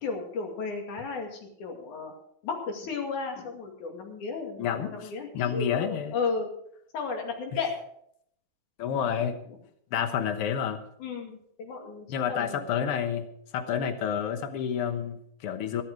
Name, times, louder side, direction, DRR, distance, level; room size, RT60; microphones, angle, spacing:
voice 1, 0.0-2.1 2.4-6.5 6.9-7.7 9.2-9.3 11.0-12.6, left 4 dB, 75° left, 2 dB, 3.9 m, -34 dB
voice 2, 4.6-6.1 8.8-9.4 9.9-10.8 12.1-13.3 13.5-15.8, left 8 dB, 55° left, 8 dB, 1.8 m, -29 dB
15.0 x 12.0 x 4.9 m, 0.70 s
omnidirectional pair, 3.5 m